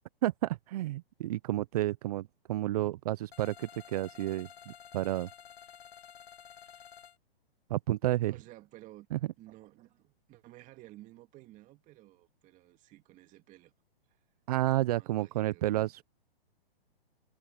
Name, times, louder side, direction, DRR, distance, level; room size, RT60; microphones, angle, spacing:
voice 1, 0.2-5.3 7.7-8.3 9.1-9.2 14.5-16.0, right 15 dB, 40° right, 0.5 m, -31 dB
sound 1, 3.3-7.2, left 8 dB, 75° left, 1.5 m, -52 dB
voice 2, 8.3-9.1 9.4-13.7 14.1-14.2 14.9-16.0, right 17 dB, 25° right, 2.2 m, -54 dB
hypercardioid pair, 140°, 31 cm